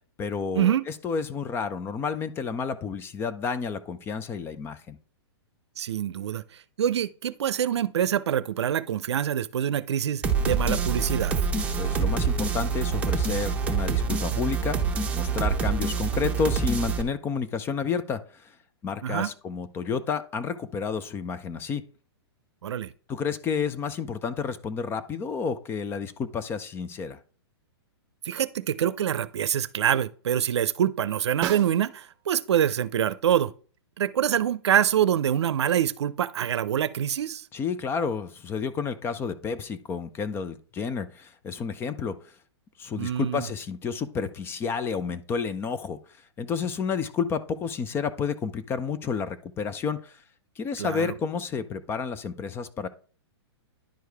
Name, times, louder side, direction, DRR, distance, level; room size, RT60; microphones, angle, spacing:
voice 1, 0.2-5.0 11.8-14.8 15.1-18.5 18.8-21.8 23.1-27.2 37.5-42.2 42.8-46.0 46.4-50.2 50.6-52.9, left 5 dB, 15° left, 0.5 m, -30 dB
voice 2, 5.8-6.4 6.8-11.4 19.0-19.3 22.6-22.9 28.2-33.5 34.0-37.4 43.0-43.5 50.8-51.1, right 9 dB, 75° right, 0.6 m, -25 dB
sound 1, 10.2-17.0, right 5 dB, 10° right, 1.1 m, -26 dB
Snare drum, 31.4-32.3 36.8-36.9, right 10 dB, 30° right, 0.9 m, -34 dB
10.5 x 4.7 x 3.4 m
hypercardioid pair, 140°, 14 cm